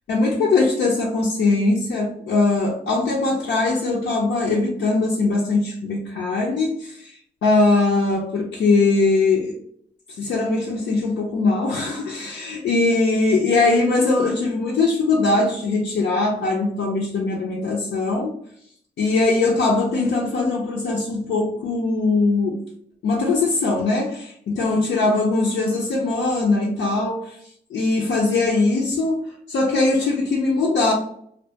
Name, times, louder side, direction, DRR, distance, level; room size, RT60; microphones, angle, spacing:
voice 1, 0.1-9.5 10.2-18.3 19.0-22.6 23.0-27.4 27.7-30.9, left 3 dB, 75° left, -2 dB, 0.4 m, -21 dB
2.2 x 2.1 x 2.7 m, 0.66 s
cardioid pair, 50°, 19 cm